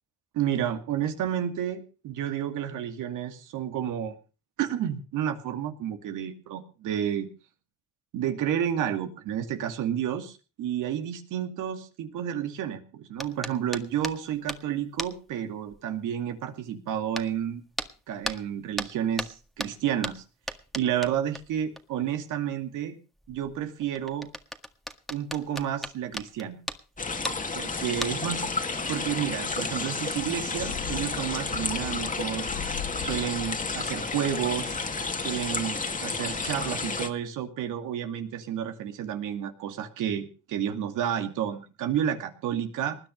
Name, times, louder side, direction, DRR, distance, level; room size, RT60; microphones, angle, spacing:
voice 1, 0.3-4.2 4.6-7.3 8.1-17.6 18.1-20.2 20.7-22.9 23.3-24.3 25.1-26.6 27.5-28.4 28.9-32.5 33.0-34.8 35.2-43.0, right 9 dB, 90° right, 6 dB, 2.5 m, -31 dB
sound 1, 13.2-14.7 15.0-15.3 15.7-15.8 17.2-17.3 17.8-18.0 18.2-21.8 22.1-22.2 23.2-27.5 27.9-28.4 29.1-29.2 29.7-29.9, equal, ahead, 1.7 m, -37 dB
sound 2, 27.0-37.1, left 4 dB, 25° left, 2.1 m, -31 dB
sound 3, 30.5-35.1 35.4-35.5, left 10 dB, 85° left, 4.0 m, -40 dB
20.0 x 9.6 x 5.3 m, 0.35 s
cardioid pair, 90°, 30 cm